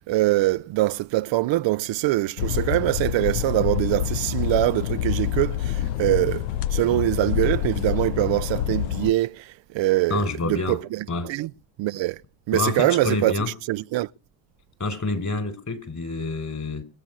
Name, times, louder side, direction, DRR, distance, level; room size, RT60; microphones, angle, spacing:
voice 1, 0.0-11.5 11.8-12.2 12.5-13.3 13.7-14.1, right 17 dB, 65° right, 0.8 m, -23 dB
sound 1, 2.4-9.1, left 11 dB, 90° left, 0.8 m, -27 dB
voice 2, 10.1-10.8 11.1-11.3 12.5-13.5 14.8-16.8, left 3 dB, 35° left, 5.2 m, -27 dB
23.5 x 8.6 x 6.3 m
supercardioid pair, 60°, 49 cm